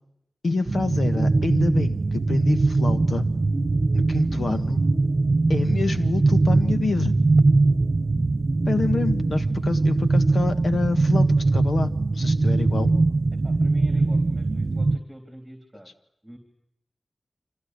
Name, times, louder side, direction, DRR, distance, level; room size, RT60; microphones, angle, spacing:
voice 1, 0.4-3.3 3.9-4.8 5.5-7.2 8.7-12.9, left 3 dB, 75° left, 9 dB, 1.8 m, -27 dB
sound 1, 0.7-15.0, right 3 dB, 50° right, 1.1 m, -21 dB
voice 2, 13.4-15.9 16.2-16.4, equal, 5° right, 5 dB, 3.8 m, -44 dB
25.0 x 16.5 x 9.9 m, 0.82 s
wide cardioid pair, 60°, 0 cm